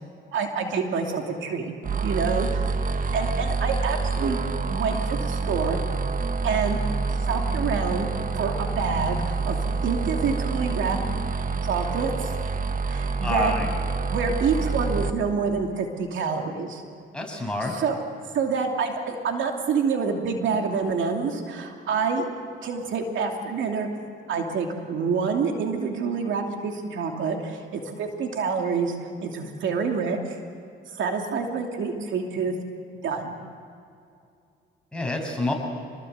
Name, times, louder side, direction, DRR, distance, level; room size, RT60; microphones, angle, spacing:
voice 1, 0.3-1.7 2.0-2.7 3.1-4.4 4.7-5.8 6.4-6.8 7.2-11.0 11.6-12.3 12.9-13.5 14.1-16.8 17.6-18.0 18.3-22.2 22.6-23.9 24.3-28.9 29.2-30.4 30.9-32.5 33.0-33.4, right 5 dB, 75° right, 2 dB, 2.8 m, -27 dB
sound 1, 1.8-15.1, right 4 dB, 40° right, 1.5 m, -27 dB
voice 2, 13.2-13.7 17.1-17.8 34.9-35.5, left 2 dB, 5° left, 0 dB, 6.9 m, -28 dB
27.5 x 21.0 x 8.1 m, 2.4 s
cardioid pair, 90°, 20 cm